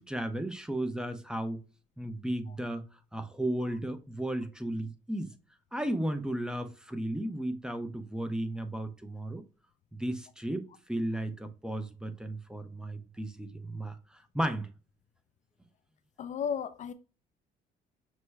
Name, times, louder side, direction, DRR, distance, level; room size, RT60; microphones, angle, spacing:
voice 1, 0.0-1.6 2.0-2.8 3.1-5.3 5.7-9.4 10.0-14.7, right 1 dB, 5° right, 0.6 m, -34 dB
voice 2, 16.2-16.9, left 7 dB, 45° left, 0.4 m, -33 dB
5.9 x 2.2 x 3.2 m
cardioid pair, 110°, 17 cm